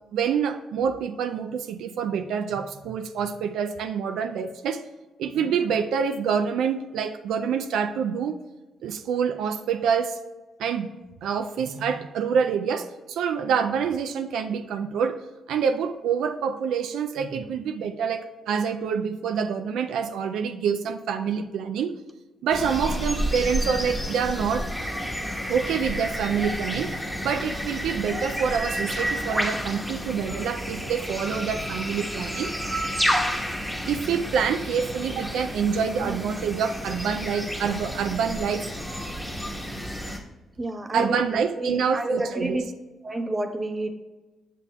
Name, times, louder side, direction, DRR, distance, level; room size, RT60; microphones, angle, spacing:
voice 1, 0.1-4.8 5.2-8.4 8.8-10.2 10.6-10.9 11.2-15.2 15.5-21.9 22.4-24.7 25.5-32.5 33.9-38.6 40.9-42.6, right 7 dB, 80° right, 7 dB, 0.3 m, -26 dB
sound 1, 22.5-40.2, equal, ahead, 1.2 m, -30 dB
voice 2, 40.6-41.2 41.6-42.7 43.0-43.9, right 2 dB, 25° right, 6 dB, 0.9 m, -28 dB
8.4 x 6.6 x 2.3 m, 1.2 s
supercardioid pair, 60°, 0 cm